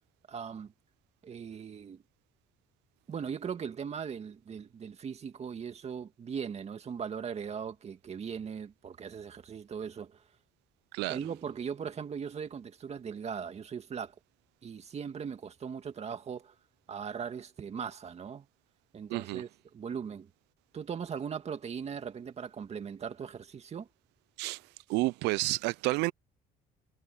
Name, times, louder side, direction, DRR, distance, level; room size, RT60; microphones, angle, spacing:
voice 1, 0.3-0.7 1.2-2.0 3.1-10.2 11.1-14.1 14.6-16.5 16.9-18.5 18.9-20.3 20.7-23.9, right 7 dB, 40° right, 2.1 m, -39 dB
voice 2, 19.1-19.4 24.4-24.6 24.9-26.1, right 22 dB, 90° right, 0.4 m, -30 dB
cardioid pair, 110°, 17 cm